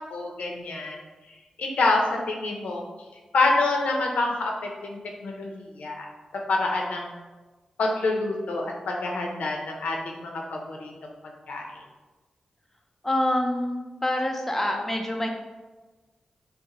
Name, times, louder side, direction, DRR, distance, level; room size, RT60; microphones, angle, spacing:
voice 1, 0.1-1.0 1.6-2.8 3.3-4.5 4.8-5.0 5.2-6.1 6.5-7.1 7.8-10.9 11.5-11.6, left 2 dB, 85° left, 0 dB, 0.6 m, -26 dB
voice 2, 13.0-15.3, left 1 dB, 10° left, 2 dB, 0.5 m, -26 dB
5.6 x 2.1 x 2.9 m, 1.2 s
cardioid pair, 70°, 2 cm